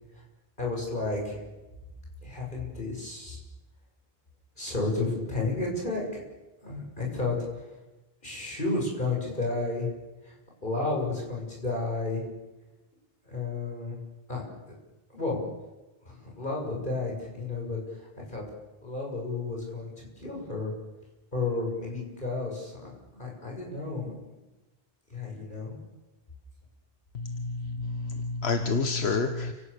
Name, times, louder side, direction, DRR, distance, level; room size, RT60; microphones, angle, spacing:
voice 1, 0.6-1.4 2.2-3.4 4.6-6.2 6.6-7.8 8.2-9.9 10.2-10.3 10.6-12.3 13.2-14.0 14.3-14.8 15.1-15.4 16.0-18.4 18.8-20.7 21.3-24.1 25.1-25.8, left 3 dB, 55° left, -2 dB, 7.2 m, -32 dB
voice 2, 27.1-29.5, left 4 dB, 90° left, 6 dB, 1.5 m, -29 dB
29.5 x 17.5 x 6.9 m, 1.1 s
omnidirectional pair, 1.0 m